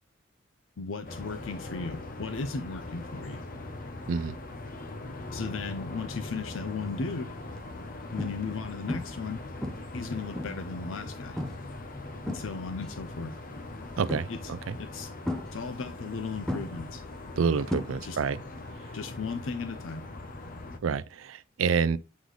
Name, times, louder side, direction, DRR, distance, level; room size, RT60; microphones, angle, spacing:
voice 1, 0.8-3.4 5.3-7.3 8.1-9.4 9.9-11.4 12.3-13.4 14.3-14.5 14.8-15.1 15.5-17.0 18.0-18.2 18.9-20.0, left 4 dB, 85° left, 0.6 m, -36 dB
sound 1, 1.0-20.8, left 2 dB, 45° left, 0.8 m, -41 dB
sound 2, 6.6-6.9 7.5-7.6 8.2-8.6 8.9-9.3 9.6-10.8 11.4-11.7 12.0-12.9 14.1-14.6 15.3-16.1 16.5-18.4 18.6-19.0 21.1-21.2, left 1 dB, 5° left, 0.7 m, -36 dB
voice 2, 14.0-14.8 17.4-18.4 20.8-22.0, right 5 dB, 85° right, 0.4 m, -28 dB
8.3 x 3.9 x 3.1 m
head